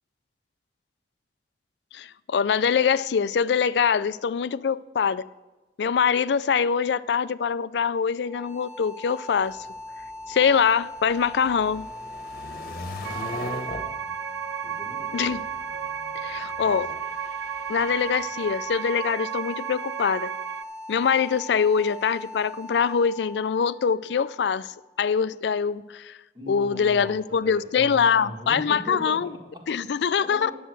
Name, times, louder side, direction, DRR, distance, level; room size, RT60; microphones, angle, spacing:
voice 1, 1.9-5.3 5.8-9.6 10.3-11.9 15.1-15.5 16.2-16.9 17.7-20.3 20.9-26.2 26.5-29.3 29.7-30.5, left 6 dB, 75° left, 0.4 m, -24 dB
sound 1, 8.2-25.2, left 1 dB, 5° right, 1.1 m, -40 dB
sound 2, 9.4-18.7, left 2 dB, 55° left, 1.0 m, -40 dB
sound 3, 13.0-20.6, right 11 dB, 85° right, 0.4 m, -34 dB
voice 2, 14.6-15.3 26.3-30.5, equal, 25° right, 1.7 m, -40 dB
10.0 x 7.7 x 7.7 m
head